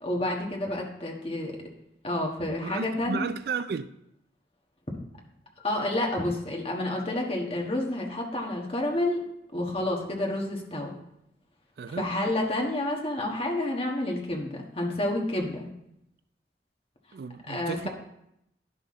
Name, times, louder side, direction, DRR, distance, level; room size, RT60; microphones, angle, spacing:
voice 1, 0.0-1.5 2.0-3.3 5.6-9.2 9.5-11.0 12.0-15.7 17.5-17.9, left 1 dB, 30° left, 1.4 m, -29 dB
voice 2, 2.6-3.9 11.8-12.1 17.1-17.9, right 5 dB, 55° right, 0.3 m, -33 dB
10.5 x 6.0 x 3.7 m
head